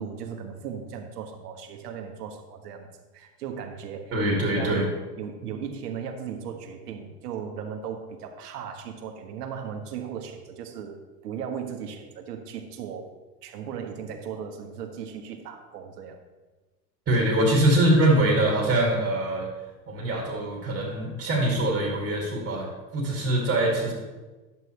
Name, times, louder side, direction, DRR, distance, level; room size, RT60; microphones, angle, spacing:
voice 1, 0.0-4.1 4.5-11.0 11.2-13.1 13.4-16.2, right 7 dB, 70° right, 5 dB, 1.5 m, -37 dB
voice 2, 4.1-4.9 17.1-19.5 19.9-23.9, right 1 dB, 25° right, -2 dB, 2.4 m, -23 dB
11.0 x 8.4 x 3.2 m, 1.2 s
hypercardioid pair, 100°, 49 cm